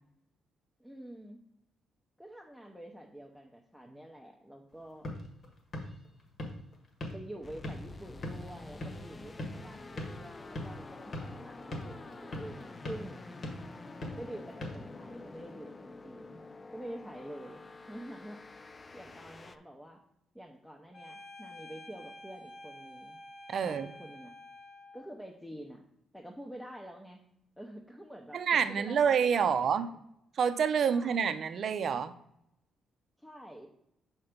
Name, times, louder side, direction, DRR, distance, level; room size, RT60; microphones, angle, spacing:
voice 1, 0.8-1.4 2.2-5.1 7.1-13.2 14.2-16.4 16.7-17.6 17.9-18.5 18.9-20.0 20.3-23.2 23.6-24.3 24.9-25.8 26.1-27.2 27.6-30.0 30.9-31.3 33.2-33.7, right 1 dB, ahead, 1 dB, 0.8 m, -47 dB
sound 1, 4.7-15.5, left 1 dB, 50° left, 1.6 m, -43 dB
sound 2, 7.4-19.6, left 3 dB, 25° left, 0.4 m, -48 dB
sound 3, 20.9-25.1, left 1 dB, 70° left, 1.8 m, -50 dB
voice 2, 23.5-23.9 28.3-29.9 30.4-32.1, right 7 dB, 60° right, 11 dB, 0.5 m, -28 dB
5.7 x 4.4 x 5.1 m, 0.78 s
cardioid pair, 90°, 0 cm